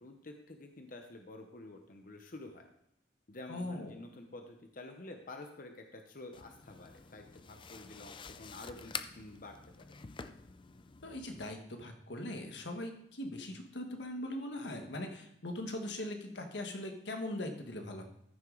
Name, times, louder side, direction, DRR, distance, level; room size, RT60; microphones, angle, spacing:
voice 1, 0.0-2.7 3.3-9.5 9.9-10.0, left 2 dB, 55° left, 4 dB, 0.9 m, -49 dB
voice 2, 3.5-4.0 11.0-18.1, left 1 dB, 90° left, 4 dB, 1.4 m, -40 dB
sound 1, 6.3-11.5, left 6 dB, 30° left, 0.4 m, -48 dB
14.0 x 6.3 x 3.9 m, 0.77 s
head